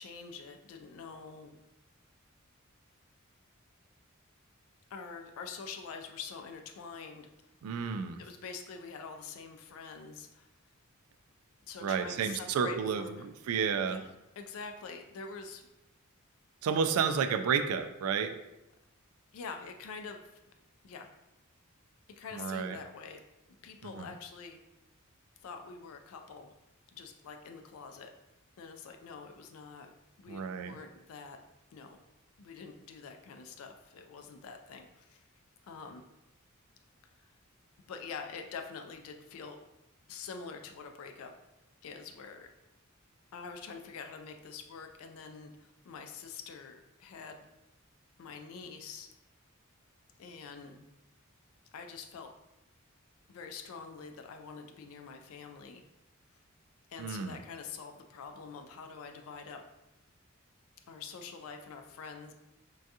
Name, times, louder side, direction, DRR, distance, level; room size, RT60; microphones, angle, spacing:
voice 1, 0.0-1.6 4.9-7.3 8.2-10.5 11.7-13.3 13.9-14.1 14.4-15.6 19.3-20.4 20.8-21.1 22.2-23.2 23.6-24.6 25.4-26.5 26.9-28.1 28.6-29.9 30.2-31.4 31.7-32.0 32.4-35.2 35.6-36.0 37.9-39.6 40.1-41.3 41.8-42.5 43.3-47.5 48.2-49.1 50.2-50.9 51.7-52.3 53.3-55.8 56.9-59.6 60.9-62.3, left 5 dB, 75° left, 5 dB, 0.3 m, -45 dB
voice 2, 7.6-8.2 11.8-14.0 16.6-18.3 22.4-22.8 24.0-24.1 30.3-30.7 57.0-57.4, right 6 dB, 85° right, 10 dB, 0.3 m, -31 dB
3.4 x 2.3 x 2.7 m, 0.92 s
head